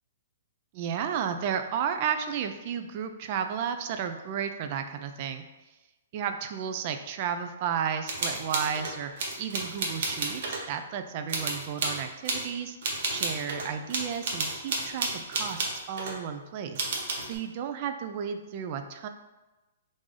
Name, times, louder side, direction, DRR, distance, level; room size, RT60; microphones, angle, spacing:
voice 1, 0.7-5.4 6.1-12.8 13.1-19.1, right 8 dB, 45° right, 7 dB, 0.3 m, -33 dB
sound 1, 8.1-10.6 11.3-12.4 12.8-16.2 16.7-17.4, right 3 dB, 60° right, 0.7 m, -31 dB
3.2 x 2.6 x 3.7 m, 1.1 s
hypercardioid pair, 145°, 0 cm